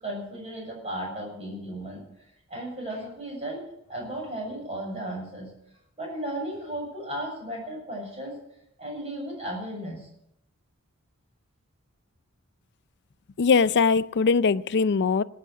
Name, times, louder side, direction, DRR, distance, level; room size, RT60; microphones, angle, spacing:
voice 1, 0.0-2.0 2.5-3.6 3.9-5.5 6.0-8.3 8.8-10.1, right 1 dB, 30° right, 6.8 m, -35 dB
voice 2, 13.4-15.2, left 5 dB, 55° left, 0.5 m, -21 dB
18.5 x 9.7 x 6.3 m
head